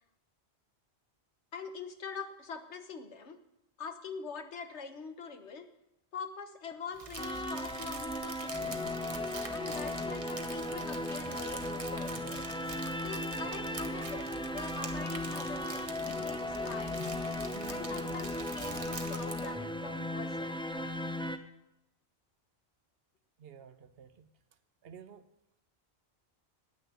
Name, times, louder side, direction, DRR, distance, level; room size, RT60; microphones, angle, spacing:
voice 1, 1.5-3.4 3.8-5.7 6.1-8.8 9.5-12.5 13.0-17.0 17.7-20.5, left 5 dB, 90° left, 8 dB, 1.5 m, -44 dB
Crumpling crinkling, 6.9-19.5, right 3 dB, 30° right, 1.1 m, -45 dB
sound 1, 7.2-21.4, left 1 dB, 5° left, 0.6 m, -36 dB
sound 2, 14.9-20.0, right 1 dB, 35° left, 1.0 m, -56 dB
voice 2, 23.4-24.3 24.8-25.3, right 7 dB, 65° right, 13 dB, 1.0 m, -52 dB
9.8 x 8.6 x 9.4 m, 0.84 s
omnidirectional pair, 1.1 m